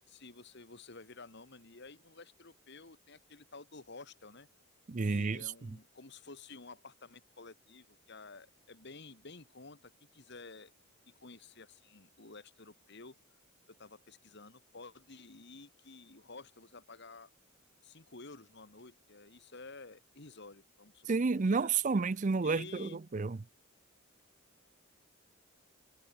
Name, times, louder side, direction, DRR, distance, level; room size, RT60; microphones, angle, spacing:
voice 1, 0.1-4.5 5.0-10.7 11.1-13.2 13.7-17.3 17.8-21.7 22.4-23.0, left 3 dB, 55° left, 1.8 m, -52 dB
voice 2, 4.9-5.5 21.1-23.4, right 4 dB, 35° right, 0.5 m, -30 dB
head